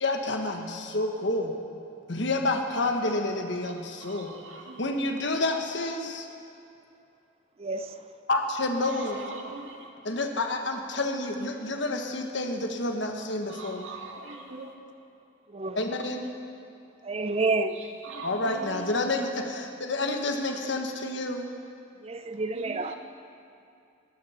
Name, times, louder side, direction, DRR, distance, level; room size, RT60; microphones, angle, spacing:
voice 1, 0.0-1.5 2.1-4.3 4.8-6.3 8.3-9.2 10.0-13.9 15.8-16.3 18.2-21.5, left 2 dB, 60° left, 1.3 m, -29 dB
voice 2, 4.0-4.9 8.9-9.9 13.5-14.7 18.0-18.8 22.5-22.9, right 3 dB, 70° right, 1.9 m, -41 dB
voice 3, 7.6-8.0 15.5-15.8 17.0-17.8 22.0-22.9, right 3 dB, 30° right, 0.5 m, -29 dB
19.5 x 12.5 x 4.4 m
head